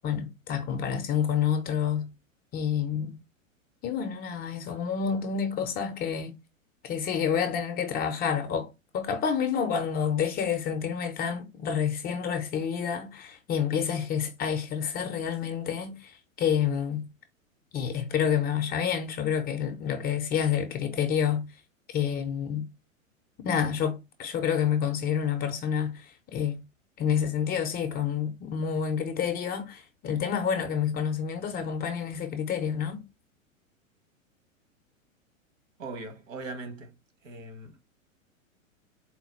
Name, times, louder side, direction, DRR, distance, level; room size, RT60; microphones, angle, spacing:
voice 1, 0.0-2.1 2.5-3.2 3.8-6.3 6.8-17.1 17.7-21.5 21.9-22.7 23.4-26.6 27.0-33.1, left 7 dB, 25° left, 0.5 m, -28 dB
voice 2, 35.8-36.9 37.2-37.8, right 3 dB, 70° right, 1.4 m, -40 dB
4.1 x 2.2 x 4.3 m
hypercardioid pair, 105°, 40 cm